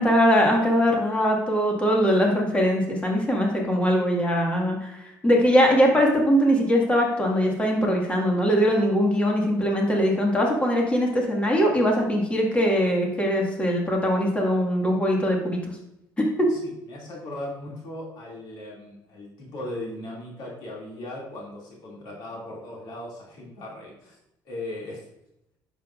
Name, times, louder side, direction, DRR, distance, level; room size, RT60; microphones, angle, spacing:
voice 1, 0.0-15.6 16.4-16.5, equal, 15° left, -1 dB, 1.9 m, -21 dB
voice 2, 16.5-24.2 24.4-25.0, left 1 dB, 70° left, -3 dB, 2.5 m, -38 dB
10.0 x 7.1 x 2.5 m, 0.83 s
cardioid pair, 125°, 8 cm